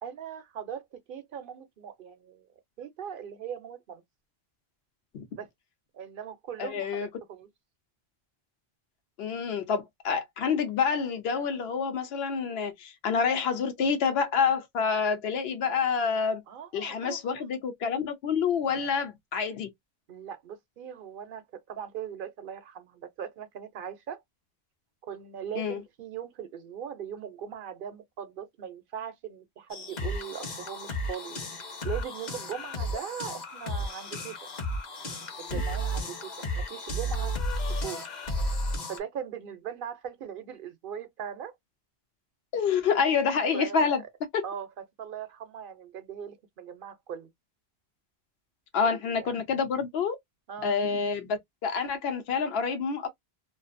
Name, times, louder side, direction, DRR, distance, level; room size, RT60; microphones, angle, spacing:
voice 1, 0.0-2.5 2.8-4.0 5.3-5.5 5.9-7.5 16.5-17.5 20.1-24.2 25.1-31.4 31.8-34.3 35.4-37.3 37.7-38.0 38.9-41.6 43.5-44.1 44.4-44.7 45.0-47.3 48.8-49.4 50.5-50.8, right 8 dB, 60° right, 0.8 m, -40 dB
voice 2, 6.6-7.1 9.2-16.4 16.7-19.7 25.6-25.8 35.5-35.6 42.5-44.0 44.3-44.4 48.7-50.2 50.6-53.1, left 6 dB, 75° left, 0.9 m, -28 dB
sound 1, 29.7-39.0, equal, 50° left, 0.8 m, -33 dB
2.5 x 2.4 x 2.5 m
omnidirectional pair, 1.0 m